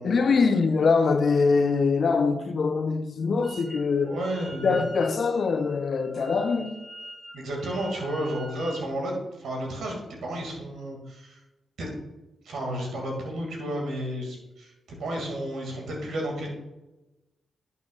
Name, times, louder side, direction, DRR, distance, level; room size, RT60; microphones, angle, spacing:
voice 1, 0.0-4.2 4.6-6.8, left 4 dB, 60° left, 0.7 m, -23 dB
Wind instrument woodwind instrument, 3.4-8.9, right 1 dB, 20° right, 2.6 m, -45 dB
voice 2, 4.0-4.8 7.3-11.4 11.8-11.9 12.4-14.7 15.0-16.5, right 1 dB, 70° right, 2.2 m, -32 dB
11.0 x 6.9 x 2.4 m
hypercardioid pair, 40°, 0 cm